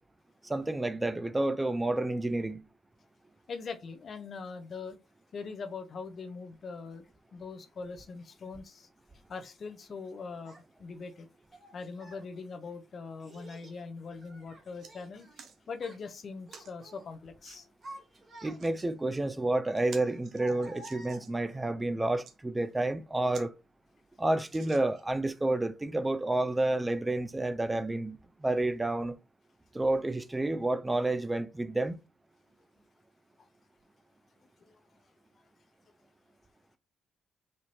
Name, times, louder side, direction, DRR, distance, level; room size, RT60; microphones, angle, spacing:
voice 1, 0.4-2.6 18.4-23.5 24.2-29.1 29.7-32.0, right 2 dB, 15° right, 0.4 m, -30 dB
voice 2, 3.5-5.0 5.3-7.1 7.3-8.9 9.3-10.5 10.8-11.3 11.7-15.3 15.7-17.7 34.6-34.8, left 4 dB, 50° left, 0.6 m, -42 dB
Child speech kid speaking, 10.4-10.6 11.5-12.3 13.2-13.8 14.2-15.5 15.7-16.0 16.5-17.1 17.5-18.9 19.9-21.6, right 1 dB, 35° right, 1.8 m, -51 dB
sound 1, 14.8-14.9 15.4-15.6 16.5-16.7 17.4-17.6 18.4-18.9 19.3-19.4 19.7-21.4 22.0-22.4 22.9-23.0 23.3-23.5 23.8-23.9 24.5-25.2 25.8-25.9, right 6 dB, 65° right, 0.7 m, -51 dB
4.3 x 2.6 x 3.0 m
cardioid pair, 90°, 0 cm